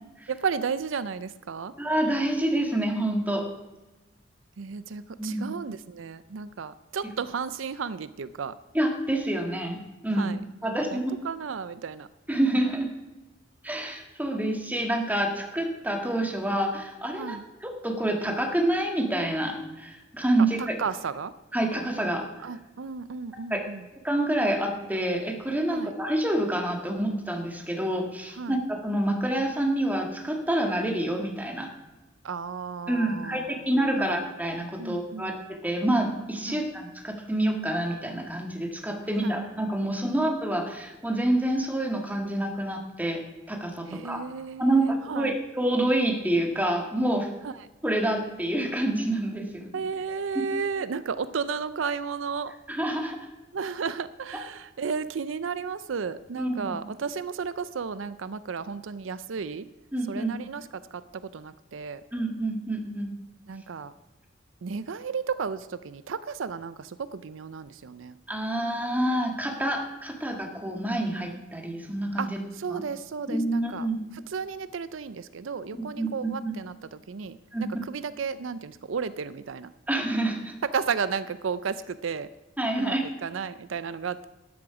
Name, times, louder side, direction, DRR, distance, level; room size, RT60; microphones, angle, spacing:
voice 1, 0.3-1.7 4.6-8.6 10.2-12.1 17.2-17.5 20.6-21.3 22.4-23.9 25.7-25.9 28.4-28.6 32.2-33.7 34.0-34.1 34.8-35.3 36.5-36.6 39.2-39.4 43.9-45.4 47.4-47.5 49.7-52.5 53.5-59.7 60.1-62.0 63.5-63.9 64.6-68.2 72.2-73.9 74.3-79.7 80.6-82.3 82.8-84.3, right 5 dB, 80° right, 15 dB, 0.5 m, -33 dB
voice 2, 1.8-3.5 5.2-5.5 8.7-10.4 10.6-11.1 12.3-12.9 13.6-20.8 21.5-22.3 23.5-23.6 24.0-31.7 32.9-35.4 35.6-43.2 43.5-44.2 44.6-47.3 47.8-49.8 52.7-53.2 56.4-56.8 59.9-60.3 62.1-63.1 68.3-72.3 72.7-72.8 73.3-74.0 76.0-76.5 77.5-77.7 79.9-80.5 82.6-83.0, right 1 dB, 10° right, 2 dB, 1.9 m, -27 dB
12.5 x 11.0 x 4.9 m, 1.1 s
head